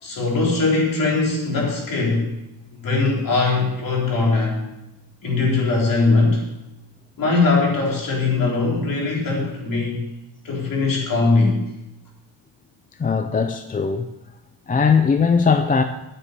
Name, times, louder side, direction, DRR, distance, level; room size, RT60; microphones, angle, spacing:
voice 1, 0.0-2.3 2.8-4.6 5.2-6.4 7.2-10.1 10.4-11.6, left 3 dB, 50° left, -2 dB, 3.9 m, -20 dB
voice 2, 13.0-14.1 14.7-15.8, left 5 dB, 20° left, 8 dB, 0.4 m, -19 dB
9.2 x 8.4 x 6.7 m, 0.93 s
cardioid pair, 155°, 44 cm